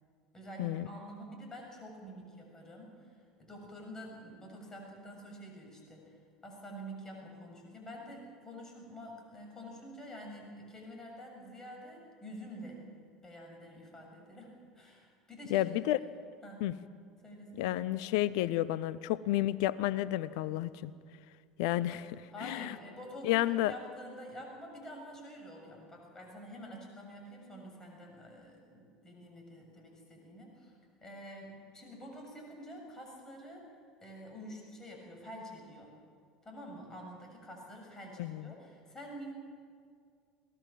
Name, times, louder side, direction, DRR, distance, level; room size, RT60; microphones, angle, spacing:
voice 1, 0.3-12.8 13.2-15.7 16.4-16.7 17.2-17.8 22.3-30.7 31.0-33.6 34.0-35.9 36.4-39.3, equal, 15° left, 0 dB, 7.1 m, -48 dB
voice 2, 15.5-16.0 16.6-16.7 17.6-20.9 21.6-22.8 23.2-23.7 38.2-38.4, left 15 dB, 55° left, 18 dB, 0.6 m, -31 dB
22.5 x 18.0 x 7.6 m, 2.2 s
figure-of-eight pair, 70°, 3 cm